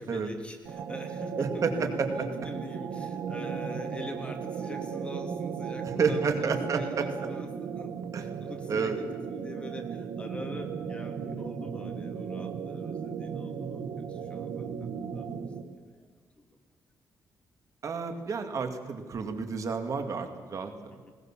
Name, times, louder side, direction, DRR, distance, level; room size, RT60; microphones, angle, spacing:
voice 1, 0.0-7.5 7.7-7.9 8.2-15.3 16.0-16.1 16.5-16.6 20.9-21.1, left 1 dB, 15° left, 4 dB, 2.9 m, -44 dB
sound 1, 0.7-15.8, right 6 dB, 85° right, 1.5 m, -36 dB
voice 2, 1.4-2.3 5.8-7.1 8.1-8.3 8.7-9.0 17.8-21.0, right 5 dB, 50° right, 6 dB, 2.2 m, -30 dB
20.5 x 19.5 x 7.4 m, 1.5 s
cardioid pair, 120°, 7 cm